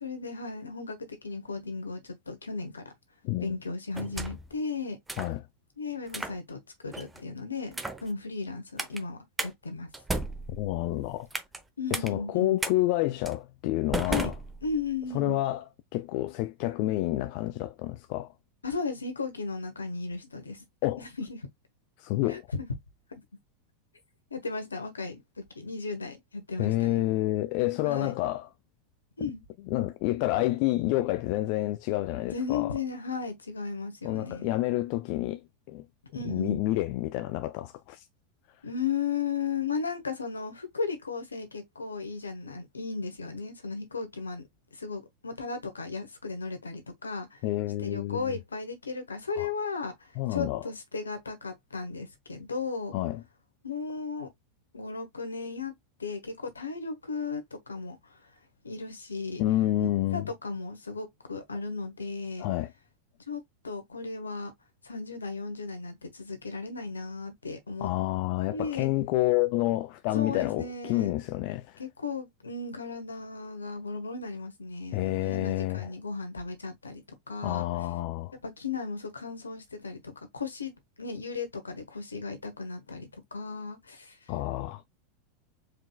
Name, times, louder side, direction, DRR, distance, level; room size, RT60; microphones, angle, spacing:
voice 1, 0.0-2.9 3.4-5.0 5.8-9.9 11.8-12.6 14.1-14.3 14.6-15.4 18.6-20.7 21.0-21.4 22.3-22.4 24.3-27.0 27.8-28.1 29.2-29.4 32.3-34.6 36.1-36.7 38.6-44.4 44.7-47.4 47.8-52.9 53.6-54.3 54.7-55.7 56.0-58.2 58.6-59.4 59.8-62.5 63.3-64.5 64.8-67.9 68.5-68.9 70.1-71.2 71.8-77.0 77.3-77.7 78.4-84.2, left 4 dB, 85° left, 1.3 m, -35 dB
voice 2, 3.2-3.6 5.2-5.5 10.5-11.3 11.9-14.3 15.1-15.6 15.9-18.3 20.8-21.0 22.0-22.4 26.6-28.5 29.2-29.3 29.7-32.7 34.0-35.4 35.7-35.9 36.2-38.0 47.4-48.4 49.4-49.5 50.2-50.6 52.9-53.2 59.4-60.3 62.4-62.7 67.8-71.8 74.9-75.9 77.4-78.3 84.3-84.8, left 16 dB, 50° left, 0.4 m, -29 dB
sound 1, 3.9-4.5 5.1-5.4 6.1-6.4 6.9-7.2 7.7-8.1 8.8-9.0 9.4-9.5 9.9-11.6 11.9-12.1 12.6-12.7 13.2-13.4 13.9-15.0, right 2 dB, 10° right, 0.8 m, -34 dB
4.6 x 3.8 x 2.3 m
figure-of-eight pair, 85°, 0 cm